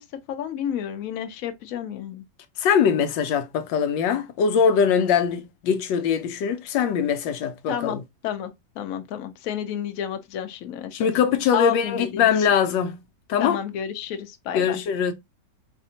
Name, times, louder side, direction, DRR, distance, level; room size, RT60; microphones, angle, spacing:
voice 1, 0.0-2.3 7.7-11.1 11.5-12.5 13.4-14.8, left 10 dB, 65° left, 0.9 m, -31 dB
voice 2, 2.6-8.0 10.9-13.0 13.3-13.6 14.5-15.1, left 7 dB, 90° left, 1.3 m, -22 dB
4.2 x 2.7 x 2.7 m
omnidirectional pair, 1.9 m